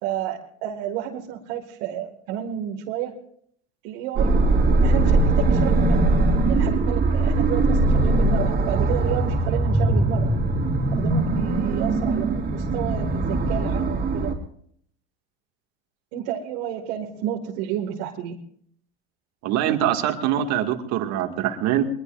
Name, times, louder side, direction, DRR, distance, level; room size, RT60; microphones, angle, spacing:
voice 1, 0.0-3.1 3.8-4.5 4.8-6.2 6.4-10.4 11.0-14.4 16.1-18.4, right 10 dB, 70° right, -1 dB, 2.2 m, -31 dB
sound 1, 4.2-14.3, right 2 dB, 25° right, 3.6 m, -21 dB
voice 2, 19.4-21.9, right 11 dB, 55° right, 5 dB, 2.2 m, -23 dB
22.5 x 21.5 x 2.6 m, 0.65 s
supercardioid pair, 120°, 33 cm